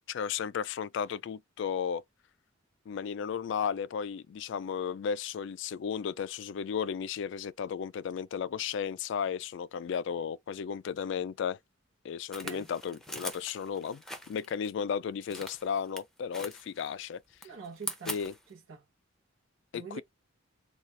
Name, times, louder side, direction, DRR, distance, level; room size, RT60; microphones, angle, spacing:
voice 1, 0.1-2.0 2.9-11.6 12.0-17.2 18.1-18.3 19.7-20.0, left 7 dB, 60° left, 0.3 m, -34 dB
sound 1, 12.3-14.7 15.2-16.0 16.3-17.0 17.3-18.5, left 1 dB, ahead, 0.6 m, -42 dB
voice 2, 17.4-18.2 18.5-18.8 19.7-20.0, right 5 dB, 75° right, 0.9 m, -45 dB
4.1 x 2.3 x 3.1 m
head